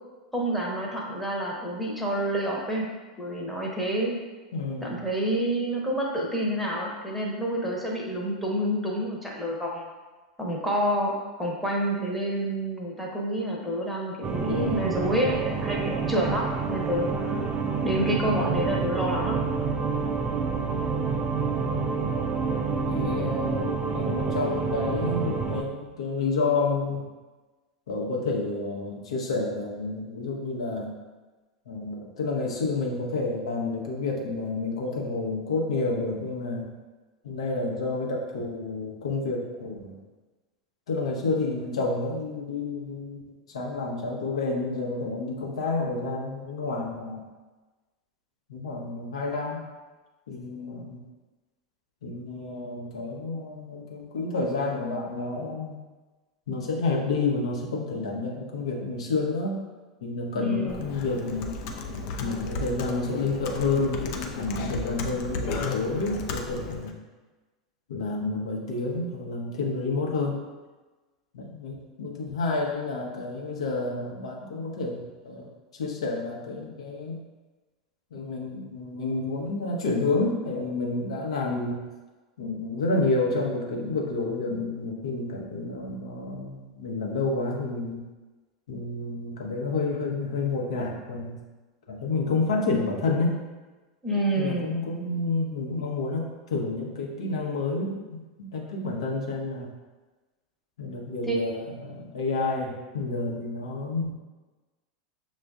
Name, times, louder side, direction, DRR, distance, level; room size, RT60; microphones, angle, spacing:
voice 1, 0.3-2.9 3.2-4.1 4.8-9.9 10.4-11.1 11.4-17.4 17.8-19.4 60.3-60.9 94.0-94.7 101.3-101.4, right 1 dB, ahead, -3 dB, 0.9 m, -28 dB
voice 2, 4.5-5.0 14.3-14.8 17.2-17.6 18.3-18.7 22.9-27.0 27.9-30.9 31.7-36.7 37.2-40.0 40.9-43.2 43.5-47.2 48.5-49.6 50.3-51.0 52.0-55.8 56.5-59.6 60.0-61.5 62.2-67.0 67.9-70.4 71.3-75.5 75.7-77.2 78.1-81.8 82.4-88.0 88.7-91.4 91.9-93.4 94.3-99.7 100.8-104.1, left 3 dB, 65° left, -2 dB, 0.8 m, -29 dB
sound 1, 14.2-25.6, right 5 dB, 25° right, 0.3 m, -28 dB
Computer keyboard, 60.7-66.9, left 3 dB, 50° left, 0.5 m, -34 dB
6.8 x 2.4 x 2.4 m, 1.2 s
figure-of-eight pair, 85°, 3 cm